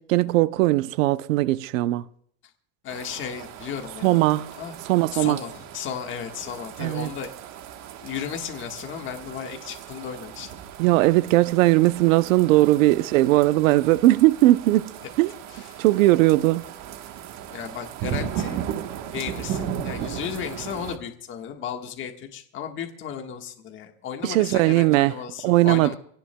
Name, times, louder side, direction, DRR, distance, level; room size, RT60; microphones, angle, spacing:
voice 1, 0.0-2.0 4.0-4.5 4.9-5.4 6.8-7.1 10.8-14.9 15.2-15.3 15.8-16.7 24.2-25.1 25.4-26.0, right 17 dB, 90° right, 0.7 m, -19 dB
voice 2, 2.8-4.2 4.6-4.7 5.1-7.3 8.0-10.5 15.5-15.8 17.5-18.6 19.1-26.0, left 8 dB, 30° left, 1.5 m, -34 dB
sound 1, 2.9-21.0, right 9 dB, 45° right, 1.2 m, -36 dB
25.0 x 17.5 x 2.2 m
supercardioid pair, 150°, 39 cm